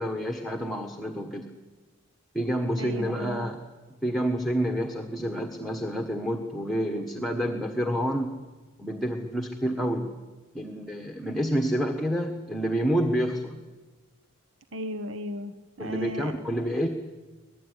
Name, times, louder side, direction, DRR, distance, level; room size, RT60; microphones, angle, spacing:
voice 1, 0.0-1.5 2.3-3.6 4.0-8.3 8.8-10.1 10.5-13.6 15.8-16.9, equal, ahead, 3 dB, 1.5 m, -28 dB
voice 2, 2.8-3.5 14.7-16.3, left 1 dB, 65° right, 7 dB, 1.3 m, -35 dB
25.0 x 19.5 x 9.9 m, 1.2 s
head